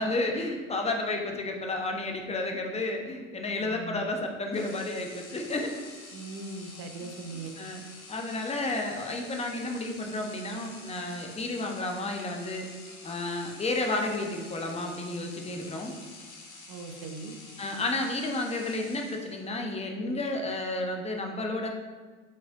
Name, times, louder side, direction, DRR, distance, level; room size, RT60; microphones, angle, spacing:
voice 1, 0.0-5.7 7.6-7.8 8.1-12.7 13.0-15.9 17.6-21.7, left 2 dB, 15° left, 2 dB, 0.9 m, -31 dB
voice 2, 3.6-4.1 6.1-7.5 16.7-17.4, right 3 dB, 35° right, 6 dB, 0.8 m, -40 dB
sound 1, 4.5-19.6, left 3 dB, 80° left, 1.5 m, -48 dB
7.5 x 5.4 x 2.6 m, 1.4 s
figure-of-eight pair, 75°, 42 cm